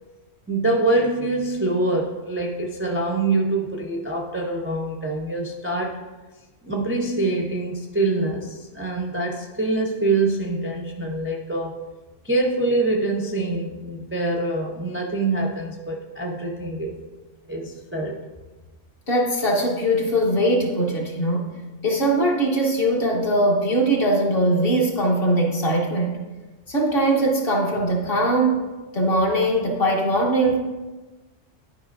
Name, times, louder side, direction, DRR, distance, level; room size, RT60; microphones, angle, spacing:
voice 1, 0.5-6.0 6.6-11.7 12.2-17.0 17.5-18.2, right 2 dB, 20° right, -2 dB, 0.3 m, -25 dB
voice 2, 19.1-21.5 21.8-26.2 26.7-30.6, right 1 dB, 45° left, -1 dB, 1.2 m, -21 dB
11.5 x 5.0 x 2.5 m, 1.2 s
omnidirectional pair, 1.4 m